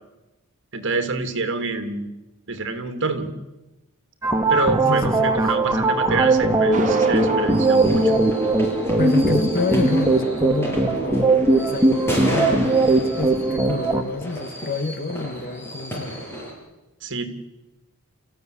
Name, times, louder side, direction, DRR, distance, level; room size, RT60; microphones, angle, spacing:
voice 1, 0.7-2.1 2.5-3.3 4.5-8.2 17.0-17.3, right 3 dB, 60° right, 8 dB, 2.8 m, -26 dB
sound 1, 4.2-14.0, right 2 dB, 15° right, 1.9 m, -19 dB
voice 2, 4.9-5.3 9.0-16.2, left 3 dB, 45° left, 11 dB, 1.7 m, -28 dB
sound 2, 6.2-16.5, equal, 10° left, 7.3 m, -32 dB
sound 3, 6.7-10.7, right 2 dB, 35° right, 2.8 m, -33 dB
28.5 x 15.0 x 10.0 m, 1.0 s
head